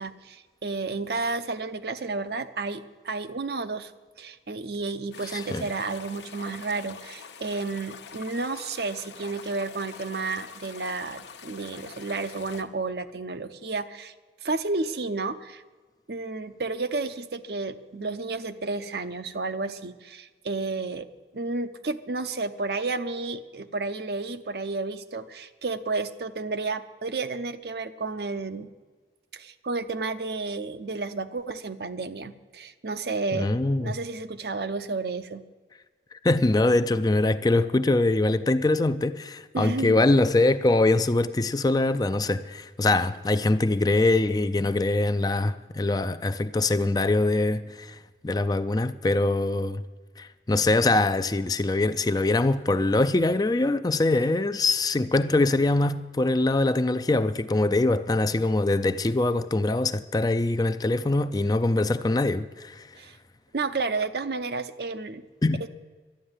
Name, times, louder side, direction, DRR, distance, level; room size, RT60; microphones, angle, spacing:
voice 1, 0.0-3.9 4.2-14.1 14.4-15.6 16.1-21.1 21.3-28.7 29.3-33.6 33.8-35.4 39.5-40.0 63.0-63.2 63.5-65.2 65.6-65.7, right 3 dB, 65° right, 0.7 m, -31 dB
sound 1, 5.1-12.6, left 6 dB, 85° left, 1.1 m, -45 dB
voice 2, 5.3-5.7 33.3-33.9 36.2-49.8 50.2-62.9 65.4-65.7, left 2 dB, 20° left, 0.4 m, -23 dB
11.5 x 9.9 x 9.5 m
head